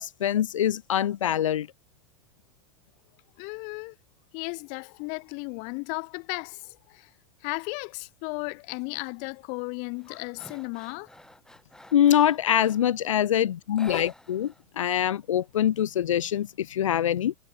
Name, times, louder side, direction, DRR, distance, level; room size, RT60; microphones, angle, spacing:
voice 1, 0.0-1.7 11.9-17.3, left 10 dB, 75° left, 0.5 m, -24 dB
voice 2, 3.4-3.9 4.3-7.1 7.4-11.1 13.7-14.0, left 35 dB, 50° left, 1.4 m, -35 dB
sound 1, 8.7-9.1 9.5-12.9 13.7-14.6 14.9-15.0 15.4-16.3, left 1 dB, 5° left, 5.3 m, -49 dB
figure-of-eight pair, 90°, 17 cm